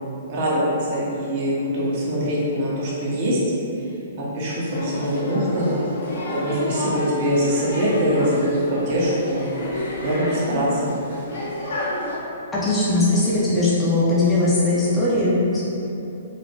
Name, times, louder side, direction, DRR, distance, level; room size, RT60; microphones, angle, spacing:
voice 1, 0.3-3.4 4.2-5.8 6.4-9.4 10.0-10.9, equal, 45° right, -7 dB, 0.7 m, -23 dB
sound 1, 4.7-12.2, left 1 dB, 75° left, 0.8 m, -30 dB
voice 2, 12.5-15.7, left 2 dB, 15° left, -9 dB, 0.5 m, -19 dB
3.1 x 2.1 x 2.7 m, 2.8 s
hypercardioid pair, 135°, 0 cm